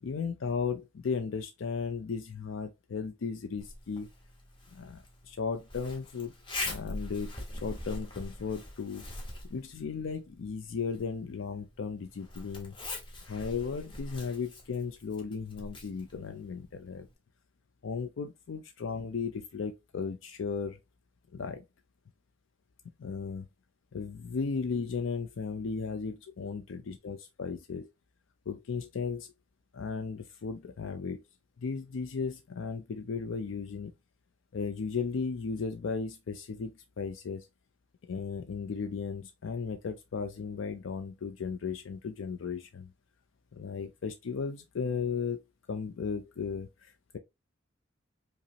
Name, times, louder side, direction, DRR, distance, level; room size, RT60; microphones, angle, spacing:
voice 1, 0.0-4.1 4.7-6.3 6.6-7.3 7.6-9.0 9.5-12.8 13.3-17.1 17.8-20.8 21.3-21.6 23.0-23.5 23.9-27.9 28.5-29.3 29.7-31.2 31.6-33.9 34.5-37.5 38.1-42.9 43.5-47.2, left 5 dB, 75° left, 0.4 m, -35 dB
Zipper (clothing), 3.6-17.1, left 2 dB, 25° left, 0.9 m, -43 dB
5.1 x 2.0 x 2.8 m
head